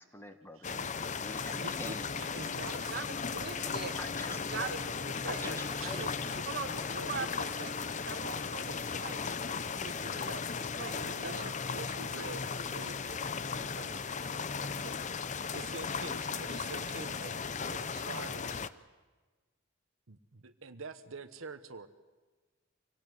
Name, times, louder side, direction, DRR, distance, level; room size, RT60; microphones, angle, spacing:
voice 1, 0.0-2.2 3.6-3.7 4.0-4.8 5.2-6.3, left 1 dB, 10° left, 7 dB, 1.5 m, -45 dB
sound 1, 0.6-18.7, left 5 dB, 35° left, 0.6 m, -36 dB
voice 2, 1.6-3.0 3.6-4.0 5.3-6.4 6.7-7.3 11.1-13.1 13.5-14.1 14.8-15.0 15.5-18.8 20.1-21.9, right 4 dB, 75° right, 10 dB, 1.1 m, -46 dB
voice 3, 3.3-4.0 4.3-4.8 5.2-5.4 6.5-11.5, right 4 dB, 50° right, 7 dB, 1.7 m, -42 dB
25.0 x 17.5 x 9.6 m, 1.3 s
head